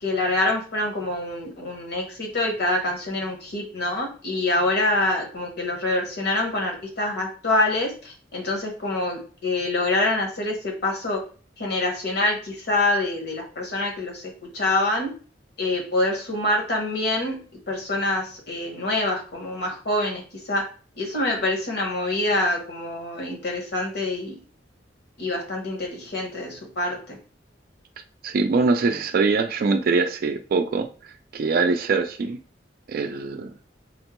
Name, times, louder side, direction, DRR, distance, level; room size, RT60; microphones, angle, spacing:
voice 1, 0.0-11.2 11.6-15.1 15.6-17.4 17.7-20.2 20.5-20.7 21.0-24.3 25.2-27.2, left 2 dB, 60° left, 1 dB, 1.0 m, -25 dB
voice 2, 28.2-30.9 31.3-32.4 32.9-33.5, right 4 dB, 55° right, 6 dB, 0.3 m, -23 dB
3.5 x 2.1 x 3.0 m, 0.39 s
head